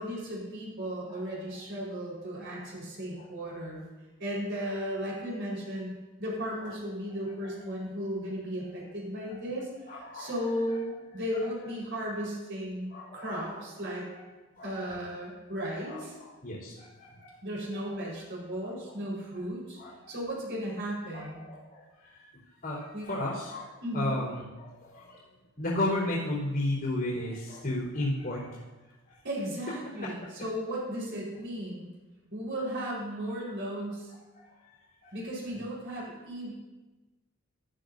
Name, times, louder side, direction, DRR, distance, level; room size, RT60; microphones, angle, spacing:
voice 1, 0.0-3.8 4.2-5.9 6.2-14.1 14.6-16.1 17.4-19.8 20.1-21.4 22.9-23.1 23.8-24.2 29.2-31.9 32.3-34.1 35.1-36.5, equal, 60° right, -4 dB, 4.5 m, -35 dB
voice 2, 9.9-10.5 11.3-11.5 12.9-13.6 14.6-14.7 15.8-17.3 17.8-18.0 18.6-18.7 19.8-20.1 21.1-25.2 25.6-28.6 29.1-29.2 30.0-30.1 34.6-34.8 35.0-35.1, left 1 dB, 50° left, -6 dB, 3.9 m, -34 dB
14.5 x 12.5 x 2.7 m, 1.1 s
head